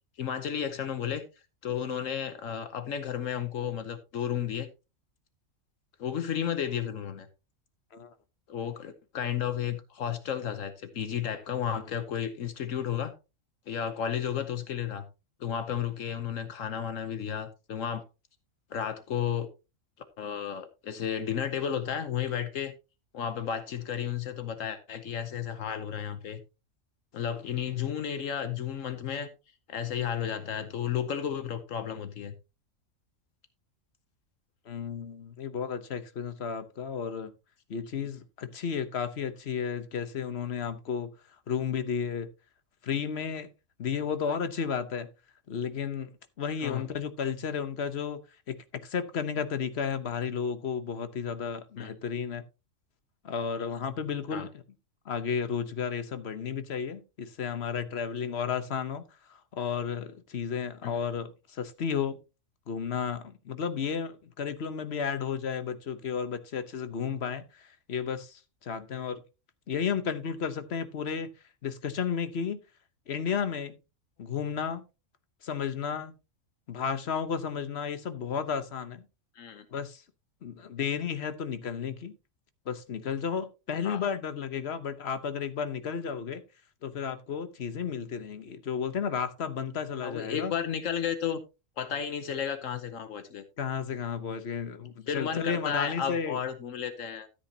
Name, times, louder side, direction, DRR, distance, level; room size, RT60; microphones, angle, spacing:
voice 1, 0.2-1.2 1.6-4.7 6.0-7.3 8.5-13.1 13.7-15.1 15.4-18.0 18.7-19.5 20.2-22.7 23.1-26.4 27.1-29.3 29.7-32.3 46.6-46.8 51.8-51.9 54.3-54.5 60.8-61.0 79.4-79.7 83.8-84.0 90.0-91.4 91.8-93.4 95.1-97.3, left 8 dB, 75° left, 1.2 m, -33 dB
voice 2, 34.7-37.3 37.7-41.1 41.5-42.3 42.8-43.5 43.8-45.1 45.5-46.1 46.4-48.2 48.5-48.6 48.8-52.4 53.2-54.6 55.0-59.0 59.3-62.2 62.7-69.2 69.7-71.3 71.6-72.6 73.1-73.7 74.2-74.8 75.4-76.1 76.7-79.1 79.7-80.0 80.4-82.1 82.7-86.4 86.8-90.5 93.6-96.4, left 7 dB, 55° left, 1.1 m, -33 dB
13.0 x 8.3 x 2.8 m
omnidirectional pair, 1.4 m